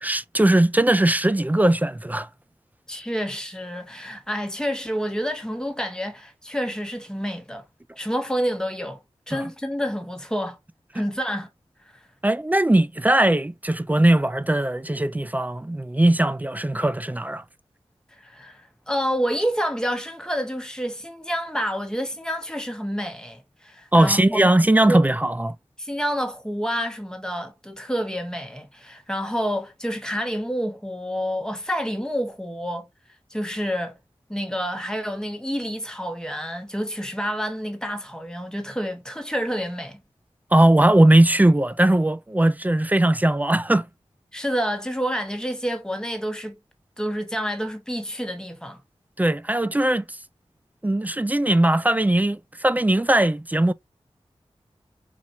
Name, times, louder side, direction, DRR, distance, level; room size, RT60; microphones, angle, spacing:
voice 1, 0.0-2.3 9.3-9.4 12.2-17.4 23.9-25.5 40.5-43.9 49.2-50.2 50.8-53.7, right 1 dB, 15° right, 0.3 m, -19 dB
voice 2, 2.9-7.6 8.0-9.0 9.3-10.6 10.9-11.5 11.9-12.0 18.2-24.5 24.9-25.0 25.8-32.9 33.3-34.0 34.3-40.0 44.3-46.5 47.0-48.8, equal, 5° left, 1.2 m, -28 dB
4.2 x 2.9 x 2.7 m
cardioid pair, 45°, 11 cm